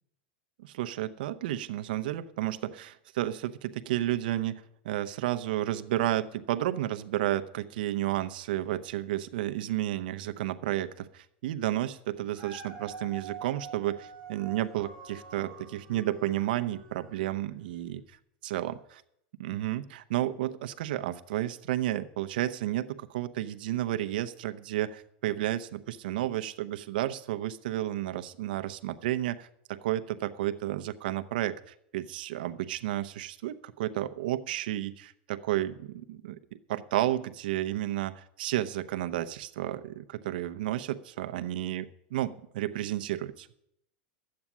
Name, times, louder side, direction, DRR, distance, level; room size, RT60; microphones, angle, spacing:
voice 1, 0.6-18.0 18.4-19.0 19.4-36.4 36.7-41.8 42.1-43.5, right 14 dB, 70° right, 10 dB, 0.8 m, -32 dB
Dog, 12.1-17.5 18.0-18.1, right 4 dB, 15° left, 3.9 m, -46 dB
12.5 x 8.6 x 7.3 m, 0.75 s
supercardioid pair, 165°, 5 cm